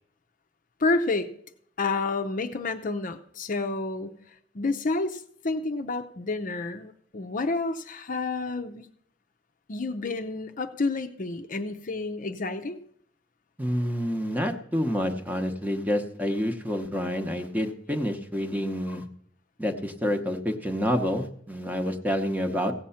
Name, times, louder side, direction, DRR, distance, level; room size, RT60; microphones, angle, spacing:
voice 1, 0.8-1.3 1.8-4.2 4.5-8.9 9.7-12.8, left 3 dB, 45° left, 8 dB, 0.6 m, -29 dB
voice 2, 13.6-19.0 19.6-22.7, equal, 10° right, 6 dB, 0.9 m, -28 dB
16.0 x 7.4 x 5.7 m, 0.66 s
head